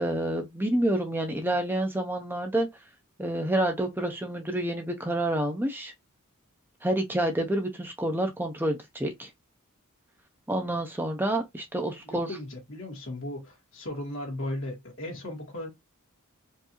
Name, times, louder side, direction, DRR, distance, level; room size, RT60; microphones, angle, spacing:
voice 1, 0.0-2.7 3.2-5.9 6.8-9.3 10.5-12.4, right 1 dB, 10° right, 0.5 m, -28 dB
voice 2, 12.0-15.7, left 1 dB, 60° left, 1.8 m, -36 dB
4.5 x 2.6 x 2.9 m
head